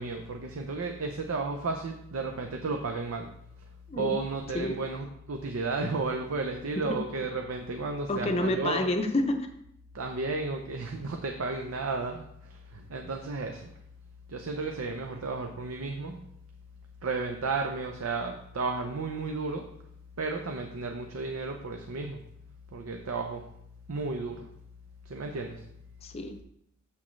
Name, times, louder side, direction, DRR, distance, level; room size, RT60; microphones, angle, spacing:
voice 1, 0.0-3.3 4.0-8.9 9.9-13.7 14.3-16.3 17.0-19.7 20.2-22.2 22.7-23.5 23.9-24.5 25.1-25.6, right 3 dB, 90° right, 3 dB, 0.6 m, -33 dB
voice 2, 8.1-9.5 26.0-26.4, left 1 dB, 30° left, 6 dB, 0.5 m, -28 dB
7.2 x 6.2 x 3.1 m, 0.76 s
head